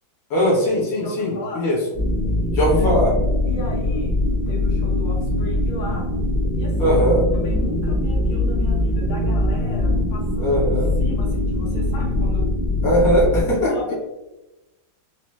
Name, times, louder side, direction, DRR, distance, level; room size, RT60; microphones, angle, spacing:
voice 1, 0.3-1.8 2.5-3.1 6.8-7.3 10.4-10.9 12.8-13.9, equal, 55° left, -4 dB, 1.2 m, -20 dB
voice 2, 1.0-1.7 2.4-2.9 3.4-6.1 6.6-7.0 7.3-10.6 11.0-12.5 13.7-13.9, left 2 dB, 70° left, -6 dB, 1.6 m, -35 dB
sound 1, 1.9-13.4, left 1 dB, 30° left, 0.9 m, -22 dB
sound 2, 6.9-13.1, right 1 dB, 60° right, 1.0 m, -34 dB
4.0 x 2.0 x 2.2 m, 1.0 s
omnidirectional pair, 2.2 m